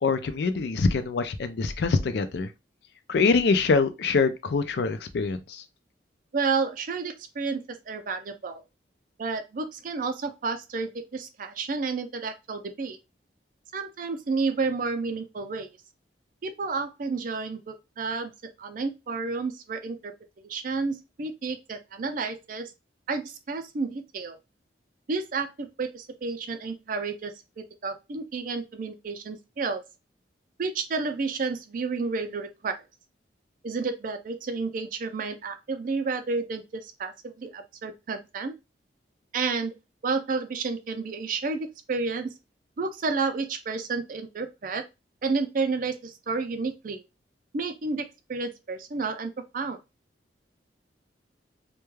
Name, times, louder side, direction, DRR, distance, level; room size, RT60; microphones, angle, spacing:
voice 1, 0.0-2.5 3.1-5.6, left 4 dB, 65° left, 0.4 m, -24 dB
voice 2, 6.3-8.6 9.2-13.0 13.7-15.7 16.4-18.3 18.6-20.1 20.4-22.7 23.1-24.4 25.1-29.8 30.6-32.8 33.6-38.6 39.3-39.7 40.0-42.3 42.8-44.8 45.2-47.0 47.5-49.8, right 4 dB, 50° right, 0.4 m, -31 dB
2.2 x 2.2 x 3.1 m
head